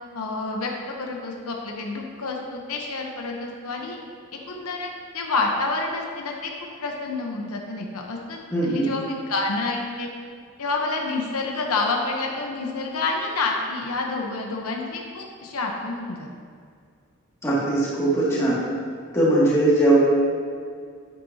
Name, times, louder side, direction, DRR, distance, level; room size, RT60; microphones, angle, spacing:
voice 1, 0.1-4.0 4.5-6.5 6.8-10.1 10.6-16.3, left 3 dB, 85° left, 0 dB, 1.0 m, -28 dB
voice 2, 8.5-8.9 17.4-18.6 19.1-20.0, right 1 dB, 15° left, -9 dB, 2.2 m, -20 dB
9.5 x 9.3 x 2.8 m, 2.1 s
head